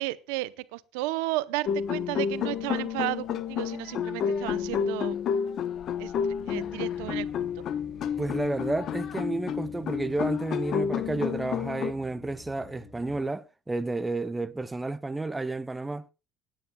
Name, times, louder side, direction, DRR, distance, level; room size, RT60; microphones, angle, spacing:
voice 1, 0.0-5.2 6.0-7.5, right 19 dB, 85° right, 0.7 m, -33 dB
sound 1, 1.7-11.9, left 8 dB, 45° left, 0.8 m, -30 dB
sound 2, 6.4-13.2, left 2 dB, 30° left, 3.2 m, -50 dB
voice 2, 8.2-16.1, right 2 dB, 10° right, 0.5 m, -31 dB
27.5 x 9.4 x 2.3 m
cardioid pair, 130°, 0 cm